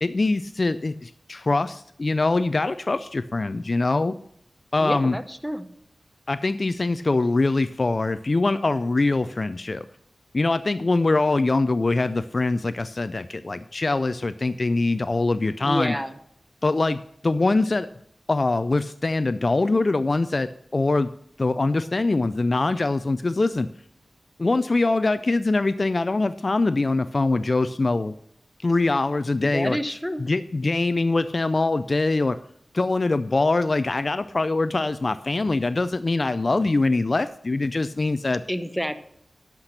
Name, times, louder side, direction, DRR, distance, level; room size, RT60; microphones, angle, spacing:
voice 1, 0.0-4.1 4.7-5.2 6.3-9.8 10.3-16.0 16.6-17.0 17.2-17.9 18.3-21.1 21.4-23.7 24.4-28.1 28.6-29.8 30.2-32.4 32.7-38.4, left 3 dB, 40° left, 13 dB, 0.3 m, -23 dB
voice 2, 4.8-5.6 15.6-16.1 29.4-30.2 38.5-39.0, equal, 5° left, 10 dB, 0.7 m, -28 dB
12.0 x 5.8 x 6.6 m, 0.71 s
wide cardioid pair, 105°, 0 cm